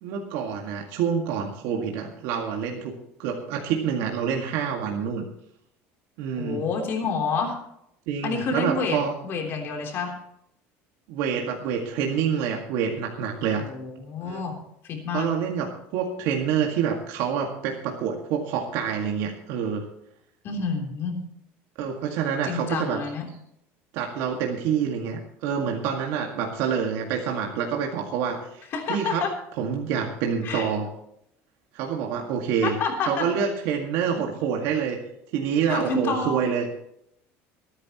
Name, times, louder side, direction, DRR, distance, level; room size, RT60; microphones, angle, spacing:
voice 1, 0.0-2.9 3.2-5.2 6.2-6.6 8.1-9.1 11.1-13.7 14.2-14.4 15.1-15.7 15.9-19.9 21.8-23.0 23.9-29.2 29.6-30.9 31.7-32.8 33.0-35.0 35.3-36.6, right 7 dB, 70° right, 1 dB, 2.0 m, -27 dB
voice 2, 6.4-7.6 8.2-10.1 13.6-14.6 14.8-15.3 20.4-21.2 22.4-23.3 28.7-29.3 30.4-30.7 32.6-33.3 35.7-36.3, left 4 dB, 45° left, 2 dB, 3.4 m, -28 dB
25.0 x 9.8 x 3.0 m, 0.76 s
cardioid pair, 150°, 6 cm